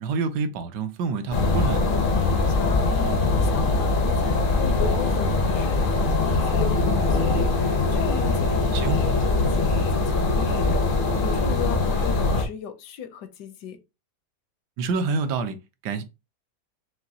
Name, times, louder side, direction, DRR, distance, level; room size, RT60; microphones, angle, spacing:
voice 1, 0.0-1.9 8.7-9.0 14.8-15.6 15.8-16.0, right 4 dB, 80° right, 1.3 m, -27 dB
sound 1, 1.3-12.4, left 3 dB, 65° left, 0.5 m, -22 dB
voice 2, 2.5-13.8, left 8 dB, 80° left, 1.3 m, -37 dB
5.9 x 2.5 x 2.7 m
omnidirectional pair, 1.8 m